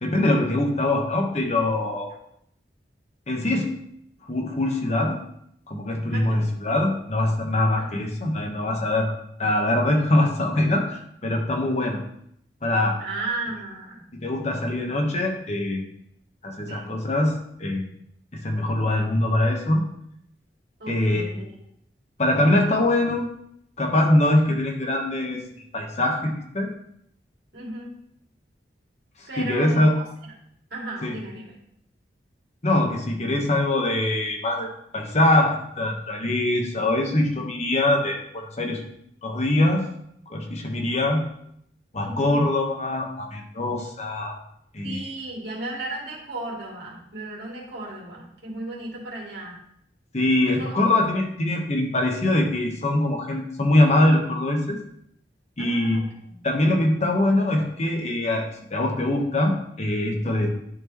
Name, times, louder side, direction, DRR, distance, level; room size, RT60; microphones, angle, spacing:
voice 1, 0.0-2.1 3.3-3.7 4.3-5.2 5.7-9.1 9.4-12.0 12.6-13.0 14.1-15.8 16.4-17.9 18.3-19.8 20.9-21.3 22.2-23.3 23.8-25.4 25.7-26.7 29.4-29.9 31.0-31.1 32.6-34.7 34.9-38.8 39.2-39.8 40.3-41.2 41.9-44.3 44.7-45.0 50.1-54.8 55.6-56.0 56.4-60.5, left 1 dB, 40° left, 2 dB, 1.1 m, -23 dB
voice 2, 6.1-6.5 7.8-8.0 13.0-14.0 16.7-16.9 20.8-21.5 27.5-27.9 29.3-30.3 30.7-31.6 42.0-42.4 44.8-49.6 50.4-50.8 55.6-56.4 60.2-60.5, right 2 dB, 65° right, -4 dB, 2.4 m, -35 dB
11.0 x 4.4 x 3.0 m, 0.72 s
head